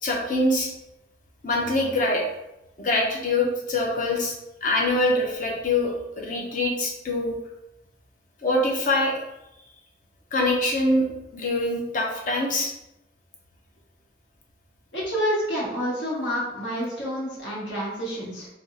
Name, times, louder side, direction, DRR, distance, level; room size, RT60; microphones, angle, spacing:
voice 1, 0.0-0.7 1.4-2.2 2.8-4.3 4.6-7.4 8.4-9.2 10.3-11.0 11.3-12.7, left 2 dB, 45° left, -1 dB, 0.6 m, -24 dB
voice 2, 14.9-18.5, equal, 75° left, -6 dB, 1.4 m, -28 dB
3.3 x 2.3 x 2.7 m, 0.90 s
head